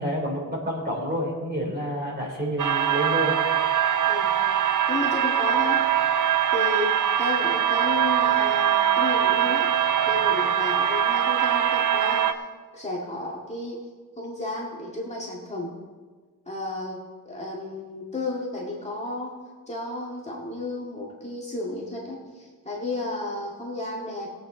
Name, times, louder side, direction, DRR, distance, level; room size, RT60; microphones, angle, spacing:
voice 1, 0.0-3.3, equal, 25° right, -1 dB, 3.2 m, -28 dB
sound 1, 2.6-12.3, right 9 dB, 55° right, 0.7 m, -22 dB
voice 2, 4.9-5.8 6.5-9.7 10.1-12.4 12.7-13.8 14.2-15.7 16.5-19.3 19.7-24.3, left 2 dB, 20° left, -4 dB, 2.0 m, -32 dB
20.5 x 8.5 x 3.9 m, 1.4 s
wide cardioid pair, 150°, 37 cm